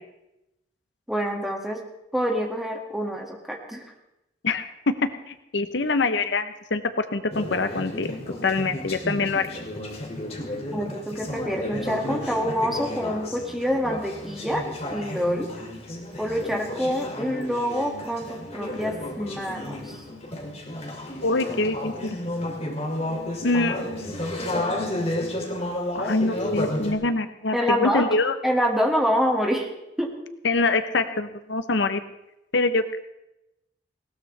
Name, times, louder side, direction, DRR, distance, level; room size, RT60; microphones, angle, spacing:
voice 1, 1.1-1.8 2.1-3.8 10.7-14.6 14.9-15.5 16.2-20.0 27.5-28.1 28.4-29.7 30.0-30.1, equal, ahead, 1 dB, 1.9 m, -26 dB
voice 2, 4.4-8.1 8.4-9.6 21.2-22.2 23.4-24.1 25.9-28.3 30.4-32.0 32.5-33.0, left 3 dB, 65° left, 10 dB, 0.8 m, -25 dB
Conversation / Chatter, 7.3-26.9, left 1 dB, 35° left, 2.6 m, -32 dB
19.5 x 18.0 x 3.3 m, 0.89 s
head